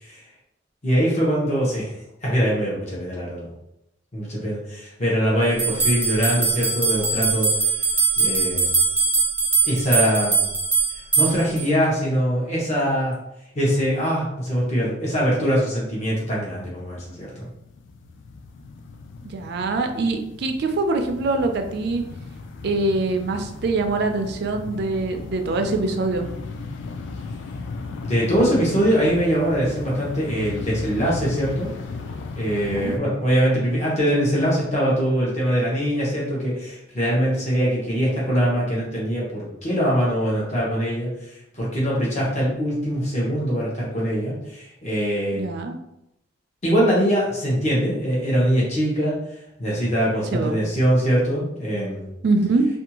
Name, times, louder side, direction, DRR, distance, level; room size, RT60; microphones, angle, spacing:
voice 1, 0.8-1.9 2.2-3.5 4.1-7.5 8.2-8.7 9.7-10.4 11.2-13.2 13.5-17.5 28.0-31.7 32.3-45.4 46.6-49.2 49.6-52.0, equal, 40° left, -5 dB, 0.9 m, -22 dB
sound 1, 5.6-11.6, right 4 dB, 10° right, 0.5 m, -21 dB
sound 2, 16.0-16.2 16.4-33.0, left 3 dB, 75° left, 0.3 m, -36 dB
voice 2, 19.3-22.0 22.6-26.3 32.7-33.0 45.3-45.8 50.3-50.6 52.2-52.7, right 3 dB, 60° right, 6 dB, 0.4 m, -24 dB
2.6 x 2.3 x 2.8 m, 0.84 s
head